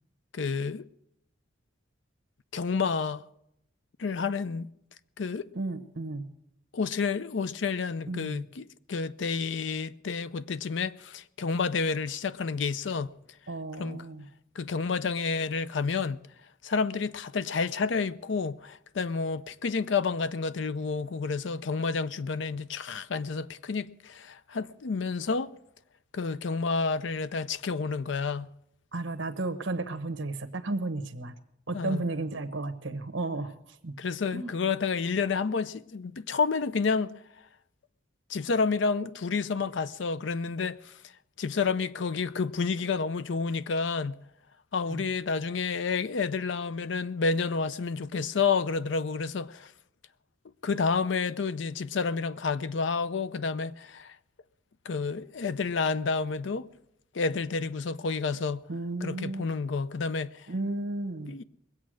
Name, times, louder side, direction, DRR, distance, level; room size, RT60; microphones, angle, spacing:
voice 1, 0.3-0.9 2.5-3.2 4.0-4.7 5.2-5.5 6.7-13.1 13.8-14.0 14.6-16.2 16.6-25.5 26.1-28.5 31.7-32.0 34.0-37.2 38.3-41.1 41.4-44.2 44.7-49.7 50.6-54.2 54.8-56.7 57.1-58.6 59.0-60.5 61.3-61.4, left 4 dB, 60° left, 0.5 m, -30 dB
voice 2, 5.5-6.3 8.1-8.5 13.5-14.3 28.9-31.3 31.7-33.5 33.8-34.0 34.3-34.5 44.9-45.1 58.7-59.5 60.5-61.4, right 2 dB, 65° right, 1.1 m, -33 dB
21.0 x 8.4 x 6.3 m
head